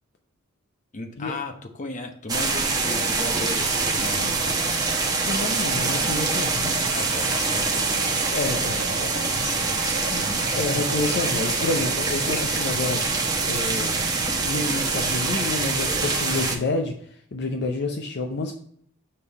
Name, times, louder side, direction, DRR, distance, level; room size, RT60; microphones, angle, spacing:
voice 1, 0.9-4.6 6.9-10.6, left 2 dB, 35° left, 5 dB, 1.0 m, -36 dB
sound 1, 2.3-16.6, right 3 dB, 20° right, 0.9 m, -25 dB
voice 2, 5.2-7.0 8.3-8.8 10.6-13.0 13.4-14.0 14.4-18.5, left 3 dB, 55° left, 3 dB, 0.6 m, -29 dB
sound 2, 7.6-12.7, right 2 dB, 70° right, 1.0 m, -39 dB
6.5 x 3.8 x 5.3 m, 0.64 s
head